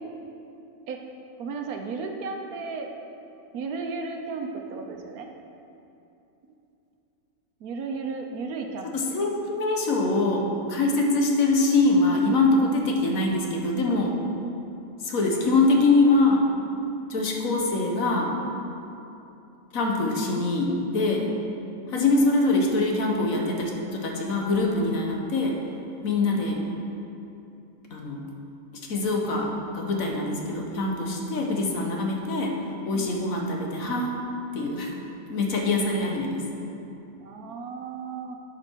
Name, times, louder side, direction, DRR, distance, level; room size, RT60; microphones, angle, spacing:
voice 1, 1.4-2.9 3.5-5.3 7.6-8.9 32.9-33.1 37.2-38.4, right 4 dB, 80° right, 3 dB, 1.3 m, -34 dB
voice 2, 8.9-14.1 15.0-16.4 17.1-18.3 19.7-21.3 21.9-25.5 26.0-26.6 27.9-28.2 28.9-32.5 32.9-34.1 34.5-34.9 35.3-36.4 38.1-38.2, left 2 dB, 70° left, 0 dB, 1.5 m, -24 dB
11.5 x 5.9 x 4.6 m, 2.8 s
omnidirectional pair, 1.5 m